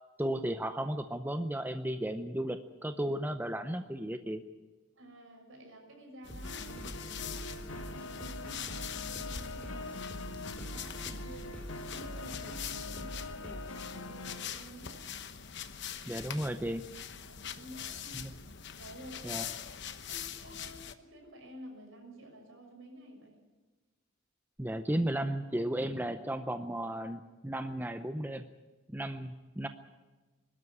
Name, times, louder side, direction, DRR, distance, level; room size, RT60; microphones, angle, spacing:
voice 1, 0.2-4.4 16.1-16.8 18.1-18.3 19.2-19.5 24.6-28.5 28.9-29.7, right 1 dB, 10° right, 8 dB, 0.6 m, -34 dB
voice 2, 5.0-10.1 10.4-15.1 17.3-18.3 18.8-19.5 20.0-23.4, right 1 dB, 70° right, 2 dB, 6.6 m, -51 dB
sound 1, 6.2-20.9, left 8 dB, 55° left, 1.0 m, -43 dB
sound 2, 6.3-13.8, equal, 5° left, 3.4 m, -46 dB
sound 3, 6.4-14.5, left 2 dB, 80° left, 1.5 m, -44 dB
22.5 x 13.0 x 9.8 m, 1.2 s
head